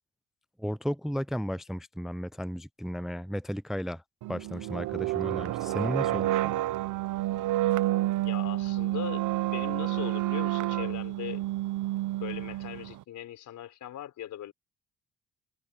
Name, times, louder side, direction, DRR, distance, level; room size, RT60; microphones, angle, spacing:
voice 1, 0.6-4.0 4.3-6.5, equal, ahead, 0.5 m, -34 dB
sound 1, 4.2-13.0, right 15 dB, 85° right, 1.0 m, -29 dB
voice 2, 8.2-9.3 9.5-11.4 12.2-14.5, left 11 dB, 75° left, 4.3 m, -39 dB
cardioid pair, 90°, 30 cm